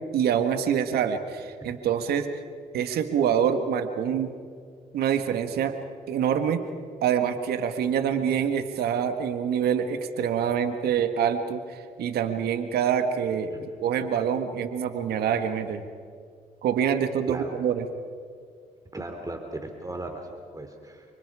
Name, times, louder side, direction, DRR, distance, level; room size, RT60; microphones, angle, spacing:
voice 1, 0.1-2.3 2.7-4.3 4.9-5.8 6.1-6.6 7.0-13.5 13.8-15.8 16.6-17.9, right 8 dB, 85° right, 8 dB, 1.7 m, -26 dB
voice 2, 18.9-21.0, right 2 dB, 20° right, 4 dB, 3.1 m, -37 dB
30.0 x 26.0 x 4.9 m, 2.1 s
supercardioid pair, 65°, 16 cm